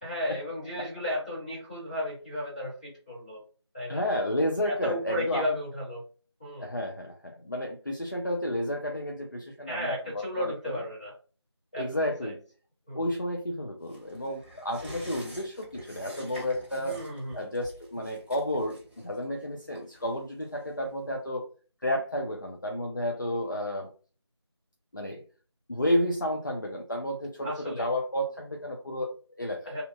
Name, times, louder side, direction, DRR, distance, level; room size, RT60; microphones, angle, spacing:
voice 1, 0.0-3.4 3.7-4.0 4.6-6.0 6.4-6.7 9.7-11.1 11.7-11.8 12.2-12.3 12.9-13.0 16.8-17.4 27.4-27.9 29.7-29.8, left 1 dB, 15° left, -9 dB, 1.0 m, -34 dB
voice 2, 3.9-5.4 6.6-10.8 11.7-12.4 12.9-17.0 17.3-21.5 21.8-23.9 24.9-25.2 25.7-29.8, left 1 dB, 45° left, 1 dB, 0.4 m, -31 dB
sound 1, 13.9-20.9 21.2-21.3, equal, 25° right, 0.8 m, -47 dB
2.7 x 2.0 x 2.4 m, 0.38 s
figure-of-eight pair, 175°, 15 cm